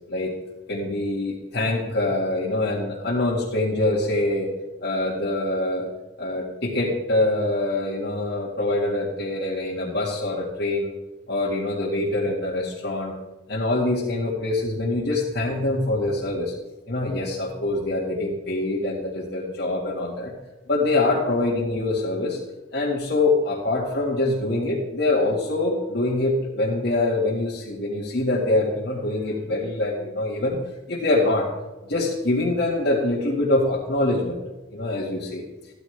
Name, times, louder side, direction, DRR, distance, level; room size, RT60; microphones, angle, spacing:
voice 1, 0.7-4.5 4.8-5.9 6.2-10.9 11.3-13.1 13.5-16.5 16.9-20.3 20.7-22.4 22.7-30.6 30.9-31.5 31.9-34.4 34.7-35.5, left 2 dB, 55° left, -5 dB, 2.0 m, -24 dB
14.5 x 13.0 x 3.4 m, 1.1 s
head